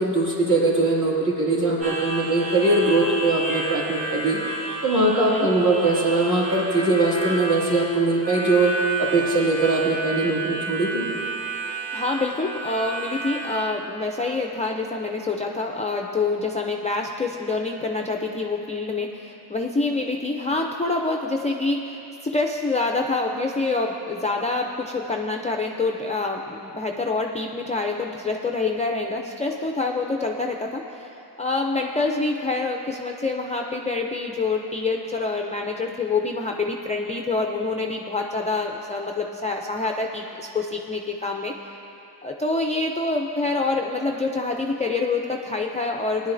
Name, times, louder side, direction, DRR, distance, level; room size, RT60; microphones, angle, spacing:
voice 1, 0.0-4.4 4.8-8.7 9.0-11.1, right 2 dB, 45° right, -5 dB, 2.3 m, -21 dB
Harmonica, 1.8-13.6, right 2 dB, 65° right, 1.8 m, -31 dB
voice 2, 11.9-41.7 42.2-46.3, left 3 dB, 20° left, 1 dB, 0.3 m, -26 dB
19.0 x 10.5 x 2.5 m, 2.9 s
wide cardioid pair, 165°, 42 cm